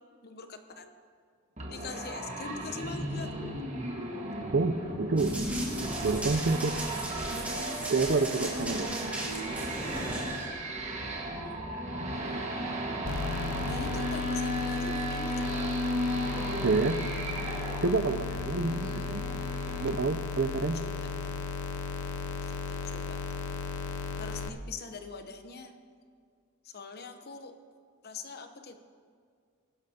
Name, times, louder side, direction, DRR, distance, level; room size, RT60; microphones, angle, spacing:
voice 1, 0.2-1.0 1.7-3.3 11.3-11.7 12.1-12.5 13.7-15.7 18.7-19.1 20.8-21.0 21.2-21.4 22.4-23.2 24.2-25.7 26.6-27.5 28.0-28.8, left 4 dB, 45° left, 7 dB, 0.9 m, -43 dB
sound 1, 1.6-19.9, right 1 dB, 30° right, 1.6 m, -35 dB
voice 2, 4.5-5.3 6.0-6.8 7.9-8.9 16.6-17.0 17.8-19.2 19.8-20.8, right 3 dB, 50° right, 11 dB, 0.5 m, -28 dB
Run, 5.2-10.5, right 1 dB, 5° right, 2.3 m, -38 dB
sound 2, 13.1-24.5, left 4 dB, 70° left, 0.6 m, -35 dB
21.0 x 11.5 x 2.9 m, 2.1 s
head